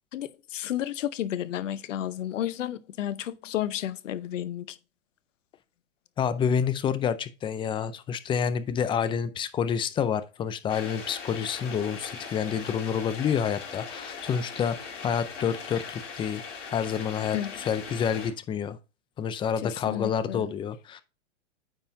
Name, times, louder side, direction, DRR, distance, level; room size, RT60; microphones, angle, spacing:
voice 1, 0.1-4.8 17.3-17.6 19.6-20.5, left 11 dB, 80° left, 0.8 m, -32 dB
voice 2, 6.2-16.4 16.7-18.8 19.2-21.0, left 7 dB, 15° left, 0.4 m, -28 dB
sound 1, 10.7-18.3, left 5 dB, 35° left, 3.7 m, -40 dB
9.0 x 5.5 x 2.7 m
hypercardioid pair, 120°, 37 cm